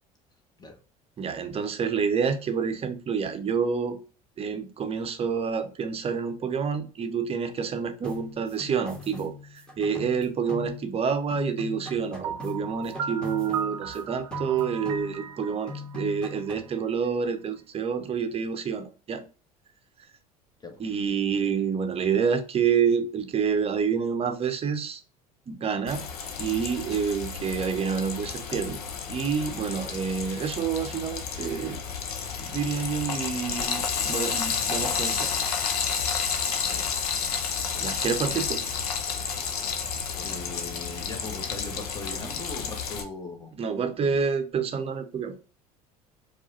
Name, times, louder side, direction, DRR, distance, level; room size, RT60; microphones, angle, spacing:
voice 1, 1.2-4.0 4.4-19.2 20.8-25.0 25.5-26.0 26.4-28.8 29.1-31.8 32.4-35.3 37.8-38.6 43.6-45.4, right 6 dB, 30° right, 0.7 m, -28 dB
sound 1, 8.0-11.0 11.3-14.0 14.3-15.4 15.7-16.8, left 3 dB, 5° left, 1.4 m, -40 dB
Piano, 12.2-17.1, right 7 dB, 70° right, 0.4 m, -36 dB
Frying (food), 25.9-43.0, left 6 dB, 75° left, 0.6 m, -31 dB
voice 2, 40.2-43.5 44.0-44.2, left 3 dB, 20° left, 1.2 m, -39 dB
4.6 x 2.4 x 2.7 m
figure-of-eight pair, 65°, 20 cm